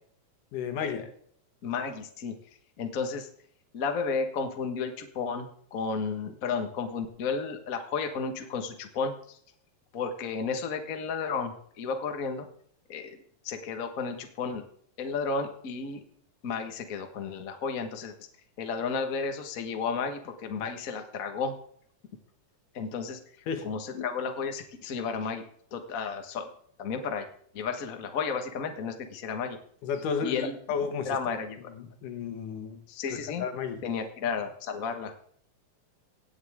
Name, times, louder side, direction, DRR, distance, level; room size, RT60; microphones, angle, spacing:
voice 1, 0.5-1.1 23.5-23.7 23.9-24.1 29.8-31.2 31.8-32.8 33.1-33.8, left 6 dB, 80° left, 7 dB, 3.1 m, -33 dB
voice 2, 1.6-2.3 2.8-3.3 3.7-9.4 9.9-12.5 12.9-13.2 13.4-14.6 15.0-16.0 16.4-18.1 18.6-21.5 22.7-23.2 23.6-25.4 25.7-26.5 26.8-27.2 27.5-29.6 30.2-30.6 31.0-31.6 32.9-33.4 33.8-35.1, left 5 dB, 40° left, 6 dB, 1.2 m, -32 dB
17.5 x 8.7 x 3.6 m, 0.63 s
omnidirectional pair, 3.6 m